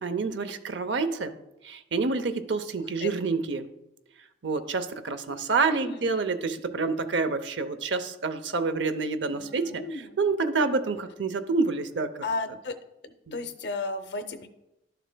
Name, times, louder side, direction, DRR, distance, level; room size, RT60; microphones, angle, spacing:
voice 1, 0.0-1.3 1.6-3.7 4.4-9.8 10.2-12.1, right 4 dB, 80° right, 10 dB, 0.6 m, -28 dB
voice 2, 5.8-6.1 9.3-10.2 12.2-12.8 13.0-14.5, left 3 dB, 65° left, 9 dB, 0.7 m, -34 dB
12.0 x 6.7 x 2.2 m, 0.93 s
head